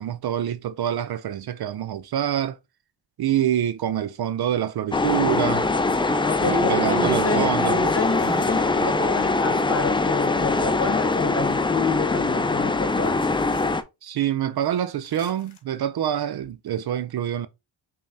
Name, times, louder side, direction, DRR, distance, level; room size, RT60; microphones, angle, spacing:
voice 1, 0.0-2.6 3.2-5.7 6.4-7.8 14.0-17.5, right 10 dB, 60° right, 0.5 m, -26 dB
sound 1, 4.9-13.8, left 3 dB, 10° left, 0.3 m, -22 dB
voice 2, 6.2-13.3, left 3 dB, 30° left, 1.2 m, -28 dB
sound 2, 8.0-9.4 10.3-11.8 13.2-13.8 15.0-15.6, left 4 dB, 65° left, 1.4 m, -45 dB
5.3 x 3.5 x 2.7 m
cardioid pair, 100°, 45 cm